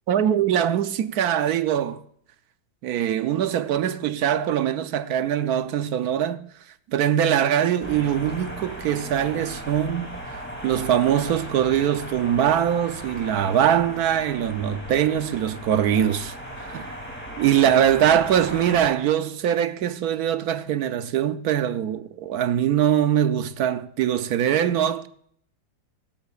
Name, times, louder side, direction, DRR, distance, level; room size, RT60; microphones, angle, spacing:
voice 1, 0.1-2.0 2.8-6.4 6.9-16.3 16.6-16.9 17.4-25.1, right 10 dB, 70° right, 1.1 m, -22 dB
sound 1, 7.8-18.9, equal, 5° left, 2.6 m, -37 dB
16.5 x 13.5 x 2.4 m
omnidirectional pair, 1.8 m